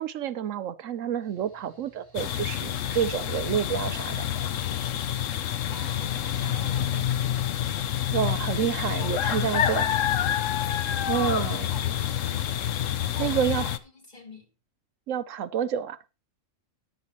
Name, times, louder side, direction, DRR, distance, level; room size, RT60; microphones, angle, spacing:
voice 1, 0.0-4.3 8.1-9.9 11.1-11.7 13.2-13.6 15.1-16.0, right 9 dB, 80° right, 1.1 m, -29 dB
Mechanical fan, 1.2-6.4, right 2 dB, 15° left, 6.3 m, -59 dB
sound 1, 2.1-13.8, left 10 dB, 75° left, 1.1 m, -28 dB
voice 2, 5.4-7.4 8.9-10.3 11.2-12.6 13.1-14.5, left 1 dB, 30° left, 3.3 m, -46 dB
13.5 x 11.0 x 3.1 m
omnidirectional pair, 1.3 m